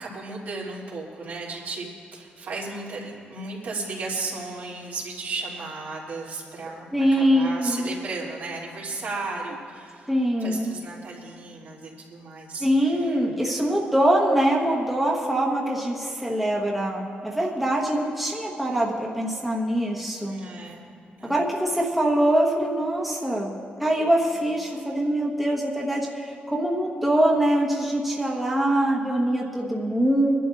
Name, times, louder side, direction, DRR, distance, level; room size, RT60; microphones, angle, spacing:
voice 1, 0.0-1.9 2.1-10.1 10.4-13.2 20.2-20.8 21.2-21.4 24.3-24.4, right 3 dB, 70° right, -5 dB, 3.0 m, -35 dB
voice 2, 6.9-7.9 10.1-10.7 12.6-20.4 21.2-23.5 23.8-30.3, right 1 dB, 5° right, -3 dB, 1.2 m, -23 dB
26.0 x 11.5 x 2.6 m, 2.3 s
cardioid pair, 115°, 3 cm